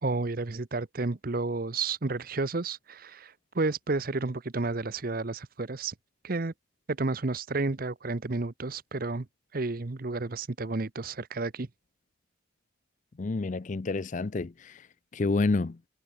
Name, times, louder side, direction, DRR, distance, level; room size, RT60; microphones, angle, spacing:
voice 1, 0.0-5.9 6.2-6.5 6.9-9.3 9.5-11.7, right 3 dB, 45° right, 0.8 m, -31 dB
voice 2, 13.2-14.8 15.1-15.8, left 3 dB, 40° left, 0.5 m, -29 dB
head